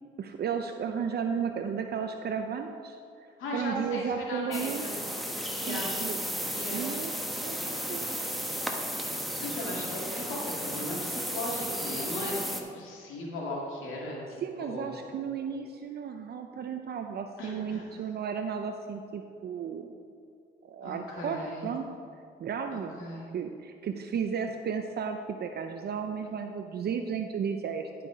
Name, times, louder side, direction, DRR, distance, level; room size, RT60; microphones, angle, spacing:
voice 1, 0.2-3.0 3.5-4.9 5.5-6.2 6.7-7.1 7.4-8.1 14.4-19.9 20.6-21.8 22.4-23.0 23.3-27.9, right 7 dB, 55° right, 5 dB, 0.6 m, -34 dB
voice 2, 3.4-4.9 5.6-5.9 6.5-6.9 9.4-15.0 17.4-17.8 20.8-21.7 23.0-23.3, left 1 dB, 90° left, -3 dB, 2.1 m, -37 dB
sound 1, 4.5-12.6, equal, ahead, 1.1 m, -34 dB
11.5 x 5.9 x 5.0 m, 2.5 s
cardioid pair, 90°, 20 cm